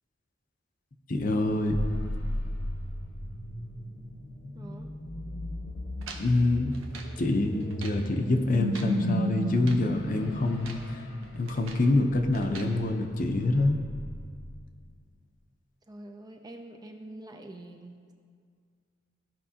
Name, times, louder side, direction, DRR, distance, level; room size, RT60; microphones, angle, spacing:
voice 1, 1.1-1.8 6.2-6.7 7.2-11.0 11.3-13.8, left 2 dB, 40° left, 4 dB, 0.6 m, -26 dB
sound 1, 1.7-14.9, equal, 75° left, 1.2 m, -35 dB
voice 2, 4.5-4.9 15.9-18.1, right 1 dB, 20° right, 4 dB, 0.4 m, -45 dB
sound 2, 6.0-7.2 7.6-8.1 8.5-9.0 9.5-9.9 10.4-10.9 11.2-11.9 12.3-12.7, right 4 dB, 80° right, 0.9 m, -46 dB
14.5 x 5.3 x 2.8 m, 2.1 s
head